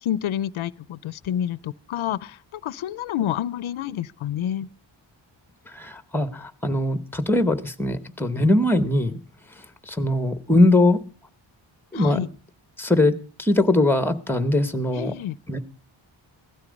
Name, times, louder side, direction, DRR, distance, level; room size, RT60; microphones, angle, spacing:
voice 1, 0.0-4.7 11.9-12.3 14.9-15.4, left 11 dB, 90° left, 0.6 m, -28 dB
voice 2, 5.7-9.2 9.9-11.0 11.9-12.2 12.8-15.1 15.5-15.6, left 1 dB, 5° left, 1.0 m, -21 dB
16.0 x 13.0 x 5.2 m
wide cardioid pair, 155°, 46 cm